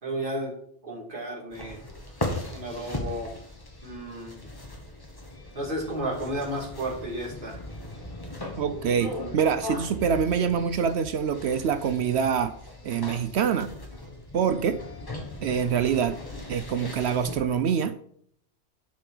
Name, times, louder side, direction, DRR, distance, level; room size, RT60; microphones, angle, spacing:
voice 1, 0.0-0.5 0.8-1.8 2.5-3.3 3.8-4.4 5.5-7.6, right 1 dB, 50° right, -3 dB, 2.8 m, -33 dB
sound 1, 1.5-17.4, left 1 dB, 20° left, 1.5 m, -38 dB
voice 2, 8.6-12.5 12.8-13.7 14.3-14.8 15.4-16.2 16.5-17.9, right 7 dB, 70° right, 11 dB, 0.8 m, -25 dB
10.5 x 5.1 x 5.0 m, 0.66 s
omnidirectional pair, 1.2 m